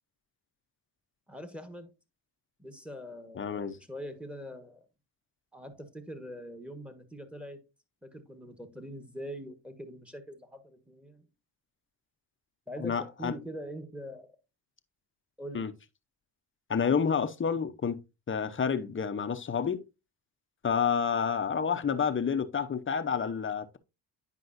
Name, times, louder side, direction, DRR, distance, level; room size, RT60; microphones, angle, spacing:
voice 1, 1.3-1.9 2.6-4.8 5.5-7.6 8.0-11.3 12.7-14.3 15.4-15.7, equal, ahead, 1.4 m, -43 dB
voice 2, 3.4-3.8 12.8-13.3 15.5-15.7 16.7-18.0 18.3-19.8 20.6-23.8, left 6 dB, 25° left, 0.8 m, -29 dB
9.5 x 5.3 x 2.6 m
supercardioid pair, 75°, 45 cm